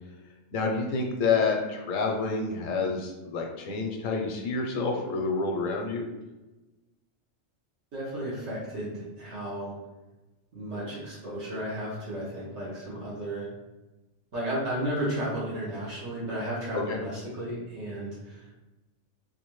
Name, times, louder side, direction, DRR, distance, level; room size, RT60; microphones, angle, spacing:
voice 1, 0.5-6.0 16.7-17.0, left 4 dB, 80° left, 2 dB, 1.1 m, -28 dB
voice 2, 7.9-9.7 10.5-13.5 14.3-18.6, right 1 dB, 60° right, -6 dB, 1.3 m, -33 dB
3.8 x 2.7 x 3.0 m, 1.1 s
omnidirectional pair, 1.3 m